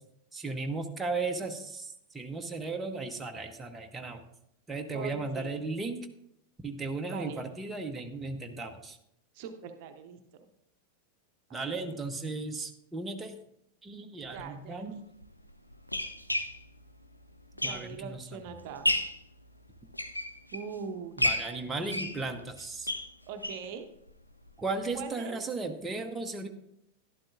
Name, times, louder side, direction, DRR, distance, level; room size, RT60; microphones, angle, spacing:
voice 1, 0.3-4.2 4.7-6.0 6.6-9.0 11.5-13.3 13.8-15.0 17.6-18.3 21.2-22.9 24.6-26.5, right 3 dB, 15° right, 4 dB, 0.9 m, -36 dB
voice 2, 4.9-5.6 7.1-7.4 9.3-10.5 11.5-12.0 14.3-14.9 17.5-18.9 20.5-21.3 23.3-23.9 24.9-25.5, right 6 dB, 45° right, 7 dB, 0.8 m, -42 dB
sound 1, 14.3-14.4 15.2-18.2 18.6-19.2 19.8-20.7 21.2-23.7 24.1-24.2 24.5-24.6 24.9-25.0, left 1 dB, 85° left, 0.5 m, -32 dB
11.5 x 11.0 x 2.5 m, 0.78 s
figure-of-eight pair, 90°, 0 cm